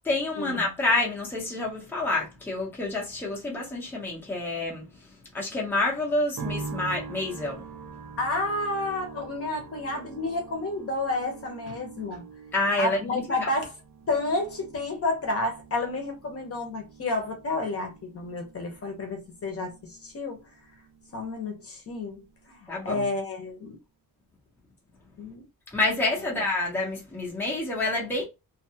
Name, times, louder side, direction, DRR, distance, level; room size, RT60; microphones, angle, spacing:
voice 1, 0.1-7.7 12.5-13.5 22.7-23.0 25.7-28.2, left 2 dB, 5° left, 0.7 m, -28 dB
sound 1, 6.4-21.6 21.9-22.7, right 4 dB, 65° right, 0.8 m, -44 dB
voice 2, 8.2-12.2 12.8-13.7 14.1-20.4 21.1-22.2 22.5-23.8 25.2-25.4 26.2-26.3, left 2 dB, 40° left, 0.8 m, -30 dB
2.6 x 2.3 x 2.7 m
wide cardioid pair, 175°, 35 cm